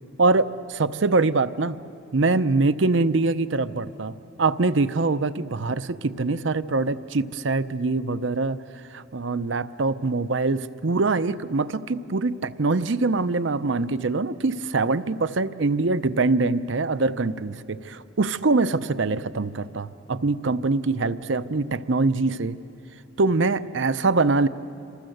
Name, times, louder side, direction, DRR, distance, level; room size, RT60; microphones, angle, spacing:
voice 1, 0.2-1.8 2.1-8.6 8.9-22.6 23.2-24.5, right 3 dB, 65° right, 13 dB, 0.7 m, -23 dB
28.5 x 26.0 x 7.9 m, 2.7 s
head